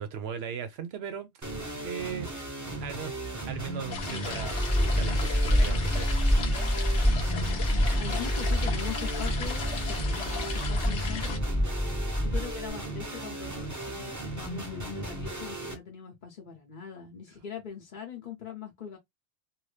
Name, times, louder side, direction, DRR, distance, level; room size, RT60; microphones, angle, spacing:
voice 1, 0.0-2.3 2.8-3.1 3.4-6.2, right 7 dB, 70° right, 0.8 m, -38 dB
sound 1, 1.4-15.7, right 2 dB, 15° right, 0.9 m, -37 dB
sound 2, 3.9-11.4, left 5 dB, 90° left, 1.1 m, -37 dB
sound 3, 4.3-12.7, equal, 10° left, 0.6 m, -27 dB
voice 2, 7.2-11.5 12.2-19.0, left 7 dB, 50° left, 0.9 m, -41 dB
2.8 x 2.7 x 3.2 m
omnidirectional pair, 1.1 m